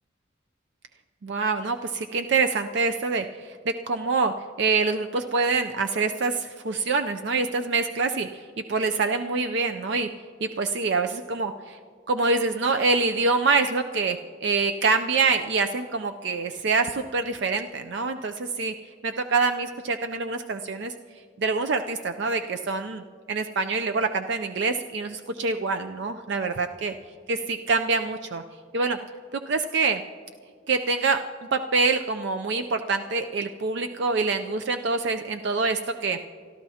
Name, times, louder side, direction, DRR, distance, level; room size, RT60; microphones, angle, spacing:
voice 1, 1.2-3.6 3.9-10.1 10.4-11.8 12.1-18.7 19.0-20.9 21.4-23.0 23.3-26.9 27.3-28.4 28.7-29.0 29.5-30.0 30.7-31.2 31.5-36.2, right 4 dB, 60° right, 7 dB, 0.5 m, -25 dB
28.5 x 13.0 x 2.8 m, 2.1 s
head